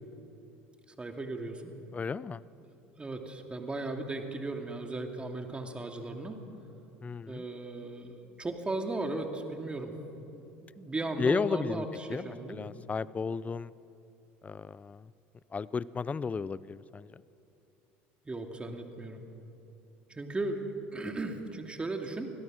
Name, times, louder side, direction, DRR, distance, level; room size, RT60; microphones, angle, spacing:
voice 1, 1.0-1.7 2.6-6.4 7.3-9.9 10.3-12.6 18.2-19.2 20.1-20.7 20.9-22.3, right 2 dB, 20° right, 4 dB, 2.6 m, -36 dB
voice 2, 1.9-2.4 7.0-7.4 11.2-13.7 14.4-15.1 15.5-17.1, left 5 dB, 25° left, 19 dB, 0.5 m, -34 dB
25.5 x 17.0 x 6.5 m, 2.9 s
hypercardioid pair, 85°, 6 cm